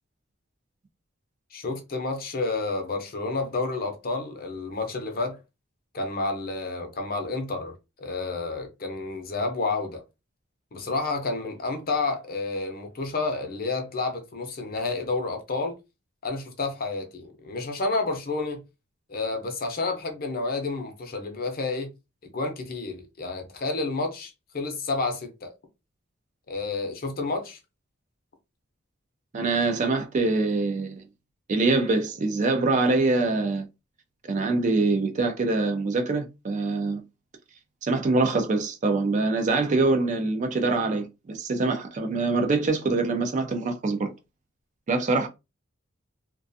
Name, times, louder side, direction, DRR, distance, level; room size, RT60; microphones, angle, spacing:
voice 1, 1.5-5.4 5.9-10.0 10.7-15.7 16.2-18.6 19.1-21.9 22.2-25.5 26.5-27.6, left 3 dB, 45° left, 0.6 m, -30 dB
voice 2, 29.3-31.0 31.5-33.7 34.3-37.0 37.8-44.1 44.9-45.3, right 3 dB, 35° right, 0.4 m, -24 dB
2.4 x 2.2 x 2.6 m
head